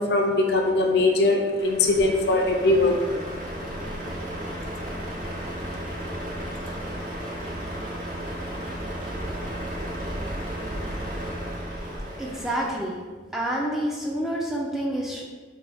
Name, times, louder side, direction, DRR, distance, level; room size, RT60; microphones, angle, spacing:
voice 1, 0.0-3.1 3.6-4.0, left 2 dB, 60° left, 2 dB, 0.4 m, -21 dB
Truck, 1.6-12.8, right 1 dB, 45° right, 0.6 m, -34 dB
voice 2, 12.2-13.0 13.3-15.2, right 1 dB, ahead, -3 dB, 0.3 m, -28 dB
4.4 x 2.2 x 3.4 m, 1.4 s
head